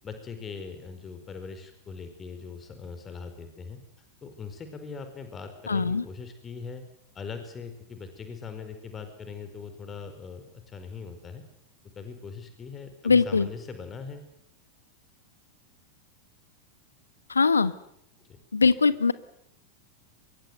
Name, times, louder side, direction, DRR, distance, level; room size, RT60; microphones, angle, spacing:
voice 1, 0.0-3.8 4.2-6.8 7.1-11.4 11.9-14.2 18.3-18.4, left 5 dB, 20° left, 8 dB, 4.5 m, -41 dB
voice 2, 5.7-6.0 13.0-13.5 17.3-17.7 18.5-19.1, left 4 dB, 75° left, 15 dB, 1.3 m, -21 dB
24.5 x 23.0 x 8.0 m, 0.73 s
figure-of-eight pair, 90°, 0 cm